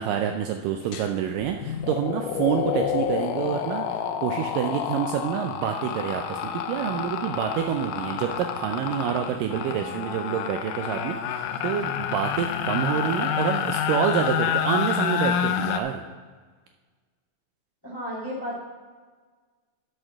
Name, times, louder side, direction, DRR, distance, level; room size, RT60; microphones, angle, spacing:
voice 1, 0.0-16.0, right 9 dB, 80° right, 4 dB, 2.0 m, -27 dB
sound 1, 0.9-1.1 1.4-15.8, left 8 dB, 80° left, 1.9 m, -28 dB
voice 2, 12.8-13.3 17.8-18.6, equal, 15° left, -4 dB, 0.7 m, -34 dB
11.5 x 6.4 x 5.9 m, 1.5 s
omnidirectional pair, 4.3 m